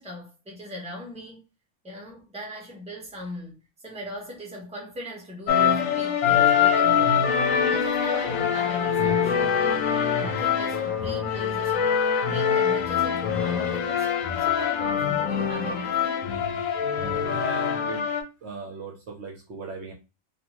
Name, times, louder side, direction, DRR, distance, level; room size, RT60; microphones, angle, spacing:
voice 1, 0.0-1.4 1.8-7.3 7.7-9.8 10.2-14.1 14.4-16.2, left 1 dB, 5° right, 0.8 m, -39 dB
sound 1, 5.5-18.2, left 7 dB, 80° left, 1.0 m, -24 dB
voice 2, 16.9-18.1 18.4-19.9, right 2 dB, 60° right, 0.9 m, -37 dB
2.5 x 2.5 x 2.9 m
omnidirectional pair, 1.4 m